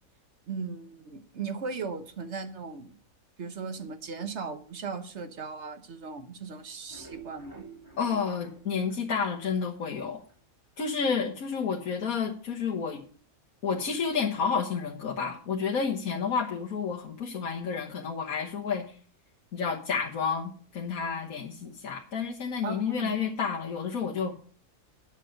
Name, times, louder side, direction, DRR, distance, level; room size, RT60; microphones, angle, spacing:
voice 1, 0.5-2.9 3.4-7.6 22.6-23.2, right 5 dB, 55° right, 9 dB, 1.4 m, -37 dB
sound 1, 6.7-9.9 10.3-10.4 10.8-10.9 11.2-11.3, right 4 dB, 15° right, 3.3 m, -50 dB
voice 2, 8.0-10.2 10.8-13.0 13.6-19.0 19.5-24.3, left 6 dB, 80° left, -2 dB, 1.7 m, -30 dB
10.5 x 7.3 x 6.5 m, 0.43 s
omnidirectional pair, 1.5 m